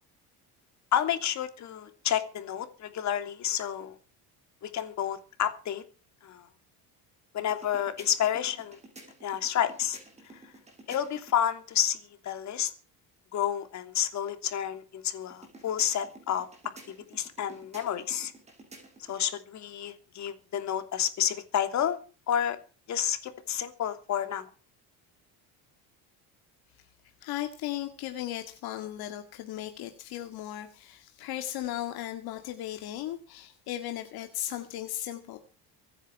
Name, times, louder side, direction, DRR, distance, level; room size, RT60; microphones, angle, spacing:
voice 1, 0.9-4.0 4.6-5.8 6.2-6.5 7.3-8.8 9.2-10.0 10.9-12.7 13.3-16.5 17.1-18.3 19.0-22.0 22.3-22.6 22.9-24.5, left 10 dB, 45° left, 8 dB, 3.0 m, -30 dB
sound 1, 7.5-11.4 15.3-19.2, right 2 dB, 15° right, 5.7 m, -52 dB
voice 2, 27.2-35.4, left 13 dB, 65° left, 6 dB, 2.1 m, -36 dB
24.5 x 10.0 x 4.7 m, 0.37 s
cardioid pair, 165°, 40 cm